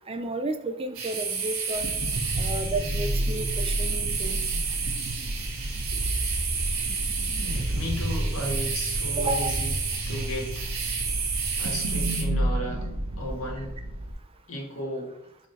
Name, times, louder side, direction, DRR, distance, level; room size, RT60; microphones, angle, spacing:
voice 1, 0.1-1.9 2.4-4.4 9.2-9.5, right 2 dB, 25° right, 8 dB, 0.5 m, -32 dB
sound 1, 0.9-12.2, right 5 dB, 65° right, 1.7 m, -31 dB
sound 2, 1.7-14.1, right 1 dB, 90° right, 1.3 m, -30 dB
voice 2, 7.4-9.7 10.1-10.8 11.6-12.9 13.2-13.8 14.5-15.1, equal, 70° left, 0 dB, 1.9 m, -34 dB
5.5 x 4.5 x 4.6 m, 0.82 s
head